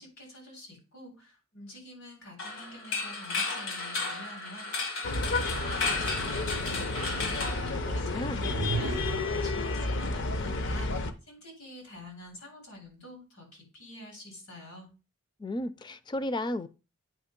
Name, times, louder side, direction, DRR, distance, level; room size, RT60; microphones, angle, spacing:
voice 1, 0.0-14.9, left 1 dB, 90° left, 3.8 m, -48 dB
sound 1, 2.4-8.4, left 3 dB, 75° left, 1.6 m, -34 dB
sound 2, 5.0-11.1, left 2 dB, 60° left, 0.7 m, -31 dB
voice 2, 7.8-8.4 15.4-16.7, left 1 dB, 20° left, 0.4 m, -33 dB
sound 3, 8.3-9.5, right 5 dB, 55° right, 0.4 m, -34 dB
8.8 x 3.0 x 5.2 m
head